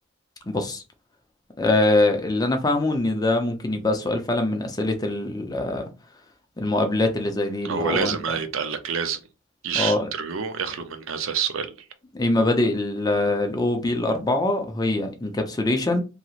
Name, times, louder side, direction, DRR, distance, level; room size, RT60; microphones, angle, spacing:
voice 1, 0.5-0.8 1.6-5.9 6.6-8.2 9.7-10.1 12.1-16.0, left 2 dB, 20° left, 0.5 m, -23 dB
voice 2, 7.6-9.2 9.6-11.7, right 6 dB, 70° right, 0.5 m, -27 dB
2.9 x 2.8 x 2.4 m
head